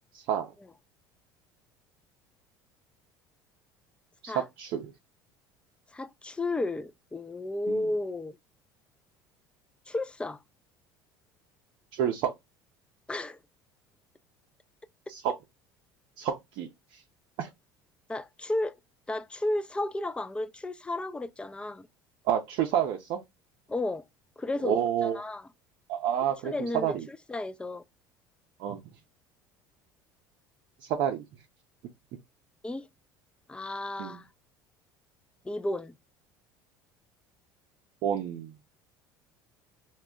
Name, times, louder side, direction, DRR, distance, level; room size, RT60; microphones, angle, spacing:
voice 1, 0.1-0.5 4.2-4.9 7.7-7.9 11.9-12.3 15.1-15.3 16.2-17.0 17.4-17.5 22.2-23.2 24.6-25.2 25.9-27.1 28.6-28.8 30.8-31.2 34.0-34.2 38.0-38.5, right 9 dB, 55° right, 0.5 m, -29 dB
voice 2, 5.9-8.4 9.9-10.4 13.1-13.4 18.1-18.8 19.1-21.9 23.7-24.0 24.4-25.4 26.4-27.8 32.6-32.9 33.5-34.3 35.4-36.0, left 2 dB, 10° left, 0.3 m, -33 dB
2.2 x 2.1 x 3.5 m
hypercardioid pair, 65°, 11 cm